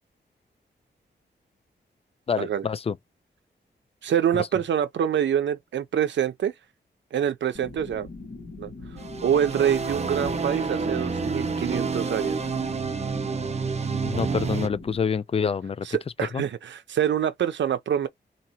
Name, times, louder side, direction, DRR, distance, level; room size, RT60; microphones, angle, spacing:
voice 1, 2.3-3.0 14.0-15.9 16.3-16.4, left 6 dB, 30° left, 0.3 m, -27 dB
voice 2, 4.0-6.5 7.1-8.1 8.6-8.7 9.2-12.5 15.8-18.1, right 9 dB, 75° right, 0.6 m, -25 dB
sound 1, 7.5-15.0, left 3 dB, 60° left, 1.7 m, -41 dB
sound 2, 9.0-14.7, right 5 dB, 35° right, 0.6 m, -29 dB
2.9 x 2.9 x 4.2 m
wide cardioid pair, 120°, 19 cm